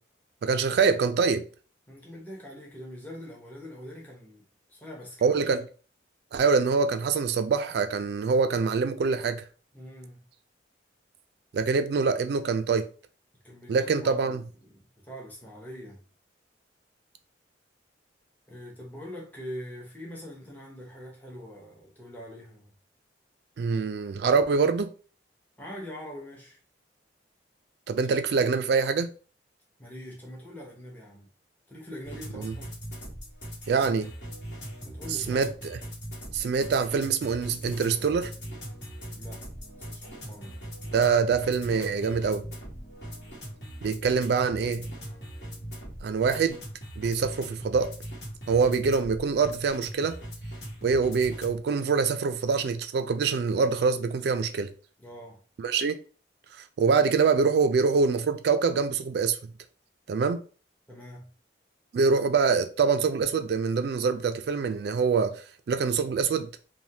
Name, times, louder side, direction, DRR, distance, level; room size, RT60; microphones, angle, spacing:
voice 1, 0.4-1.5 5.2-5.6 6.3-9.4 11.5-12.9 13.7-14.4 23.6-24.9 27.9-29.1 32.3-32.5 33.7-34.1 35.1-35.8 36.3-38.3 40.9-42.4 43.8-44.8 46.0-46.6 47.0-47.9 48.5-50.2 50.8-54.7 55.6-56.0 56.8-59.4 60.1-60.4 61.9-65.4 65.7-66.5, right 5 dB, 60° right, 0.3 m, -25 dB
voice 2, 1.9-5.6 9.7-10.2 13.4-14.4 14.7-16.0 18.5-22.7 25.6-26.6 29.8-31.3 31.7-32.8 34.8-35.5 39.1-39.4 39.9-40.7 55.0-55.4 60.9-61.3, equal, 10° left, 0.7 m, -43 dB
sound 1, 32.0-51.6, equal, 65° left, 1.2 m, -40 dB
3.3 x 2.1 x 2.7 m
head